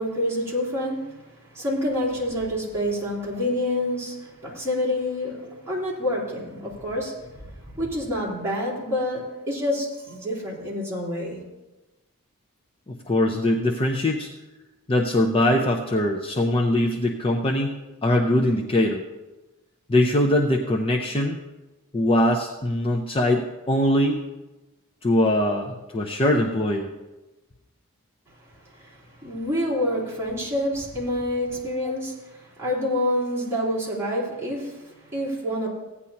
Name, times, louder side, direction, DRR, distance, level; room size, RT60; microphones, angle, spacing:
voice 1, 0.0-11.4 28.7-35.7, left 1 dB, 10° right, -8 dB, 3.7 m, -28 dB
voice 2, 12.9-14.3 14.9-19.0 19.9-21.4 21.9-24.2 25.0-26.9, left 1 dB, 25° left, 1 dB, 0.6 m, -22 dB
16.0 x 9.6 x 2.9 m, 1.1 s
head